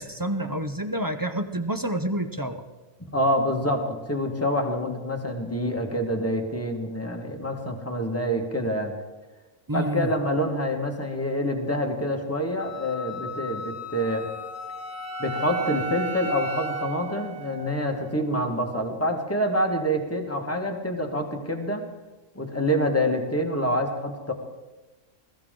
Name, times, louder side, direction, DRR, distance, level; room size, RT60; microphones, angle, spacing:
voice 1, 0.0-2.6 9.7-10.1, right 1 dB, 25° right, 8 dB, 0.4 m, -28 dB
voice 2, 3.0-8.9 9.7-14.3 15.2-21.9 22.3-24.3, equal, 10° left, 2 dB, 1.6 m, -26 dB
Wind instrument woodwind instrument, 12.6-16.9, left 6 dB, 55° left, 1.0 m, -38 dB
Wind instrument woodwind instrument 2, 14.0-18.2, right 5 dB, 55° right, 0.9 m, -35 dB
21.5 x 14.0 x 3.8 m, 1.2 s
omnidirectional pair, 1.4 m